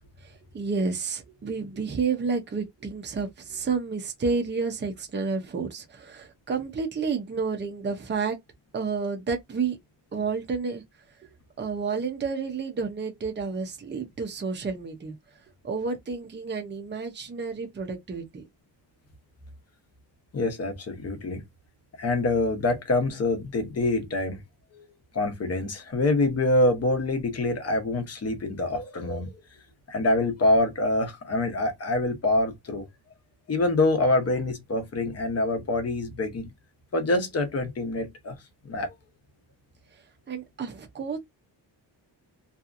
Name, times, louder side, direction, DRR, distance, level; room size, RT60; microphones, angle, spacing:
voice 1, 0.2-8.4 8.7-9.8 10.1-10.8 11.6-15.2 15.6-18.4 39.9-41.2, right 5 dB, 25° right, 0.5 m, -30 dB
voice 2, 20.3-21.4 22.0-24.4 24.7-24.9 25.1-29.4 29.9-32.9 33.5-36.5 36.9-38.4 38.6-38.9, left 2 dB, 35° left, 0.7 m, -25 dB
2.7 x 2.4 x 2.4 m
wide cardioid pair, 180°, 44 cm